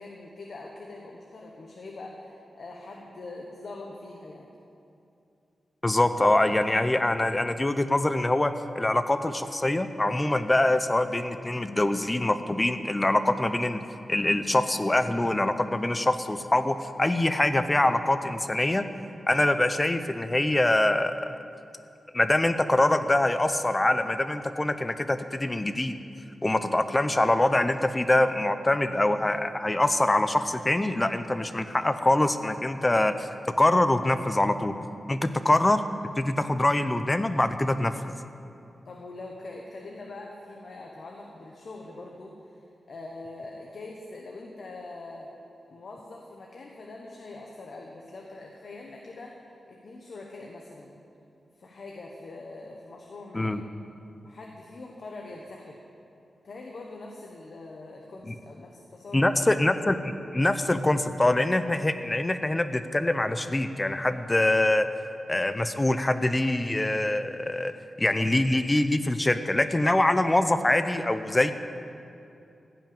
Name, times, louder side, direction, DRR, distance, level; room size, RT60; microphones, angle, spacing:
voice 1, 0.0-4.5 38.8-45.3 45.7-50.9 51.6-53.5 54.2-55.8 56.4-59.4, left 2 dB, 55° left, 0 dB, 1.1 m, -43 dB
voice 2, 5.8-13.8 14.1-18.8 19.3-21.1 22.1-26.0 26.4-33.3 33.6-34.7 35.1-35.8 36.2-38.2 53.3-53.6 58.3-58.4 59.1-64.9 65.3-67.7 68.0-71.5, left 1 dB, 15° left, 10 dB, 0.6 m, -24 dB
15.5 x 5.8 x 8.9 m, 2.7 s
wide cardioid pair, 145°, 0 cm